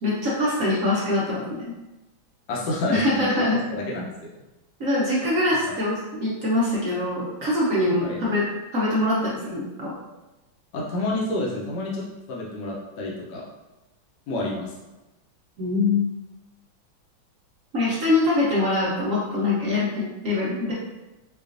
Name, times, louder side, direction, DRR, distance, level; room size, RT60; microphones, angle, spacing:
voice 1, 0.0-1.7 2.9-3.6 4.8-8.4 8.7-9.9 15.6-16.1 17.7-20.7, left 2 dB, 60° right, -7 dB, 0.9 m, -23 dB
voice 2, 2.5-3.4 3.7-4.1 5.6-5.7 8.0-8.2 10.7-12.0 12.3-13.4 14.3-14.7, left 2 dB, 70° left, -4 dB, 1.3 m, -29 dB
4.7 x 2.4 x 2.5 m, 1.0 s
omnidirectional pair, 2.2 m